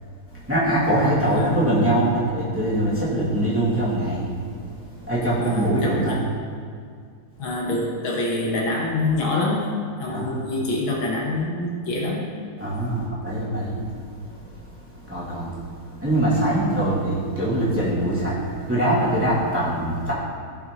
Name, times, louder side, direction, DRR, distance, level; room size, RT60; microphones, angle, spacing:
voice 1, 0.3-6.1 10.1-10.5 12.6-20.1, right 1 dB, 5° right, -10 dB, 2.2 m, -23 dB
voice 2, 5.4-6.2 7.4-9.7 10.0-12.3, left 2 dB, 70° left, -3 dB, 2.0 m, -26 dB
15.0 x 5.7 x 3.0 m, 2.2 s
omnidirectional pair, 2.4 m